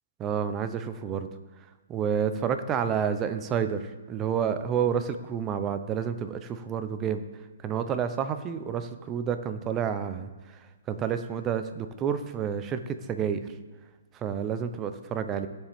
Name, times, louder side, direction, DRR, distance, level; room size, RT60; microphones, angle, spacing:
voice 1, 0.2-1.3 1.9-7.2 7.6-10.3 10.9-13.5 14.2-15.5, right 7 dB, 20° right, 10 dB, 0.7 m, -29 dB
17.0 x 7.4 x 3.6 m, 1.3 s
hypercardioid pair, 155°, 0 cm